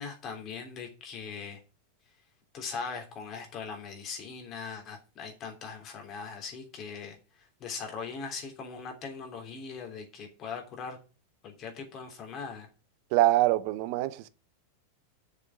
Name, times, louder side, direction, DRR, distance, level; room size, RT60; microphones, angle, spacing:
voice 1, 0.0-1.6 2.5-7.2 7.6-11.0 11.4-12.7, left 5 dB, 30° left, 3.3 m, -40 dB
voice 2, 13.1-14.3, right 16 dB, 45° right, 0.7 m, -24 dB
6.9 x 6.8 x 7.4 m
figure-of-eight pair, 90°, 0 cm